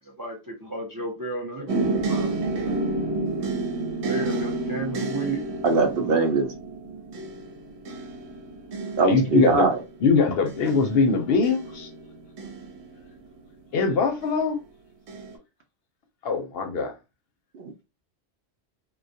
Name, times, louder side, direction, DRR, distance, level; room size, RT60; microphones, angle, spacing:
voice 1, 0.0-2.3 4.1-5.4, right 2 dB, 30° right, 0.4 m, -33 dB
sound 1, 1.7-13.5 14.2-14.7 15.1-15.3, right 2 dB, 85° right, 1.0 m, -31 dB
voice 2, 5.6-6.5 8.9-9.8 17.5-17.8, right 4 dB, 65° right, 0.7 m, -22 dB
voice 3, 9.0-9.7 10.0-11.9 13.7-14.6 16.2-16.9, left 4 dB, 65° left, 0.7 m, -22 dB
2.2 x 2.1 x 2.6 m
omnidirectional pair, 1.1 m